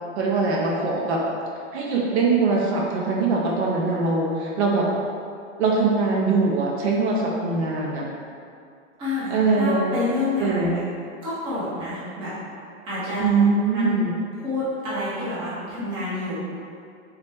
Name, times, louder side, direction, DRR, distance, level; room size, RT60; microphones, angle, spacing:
voice 1, 0.2-1.2 1.7-4.9 5.6-8.1 9.3-9.9 10.4-10.8 13.2-14.1, right 3 dB, 65° right, -3 dB, 0.7 m, -22 dB
voice 2, 9.0-10.8 11.2-12.3 12.8-13.5 13.7-14.0 14.4-16.5, left 2 dB, 15° right, -11 dB, 0.7 m, -28 dB
3.3 x 2.8 x 3.3 m, 2.4 s
supercardioid pair, 165°, 36 cm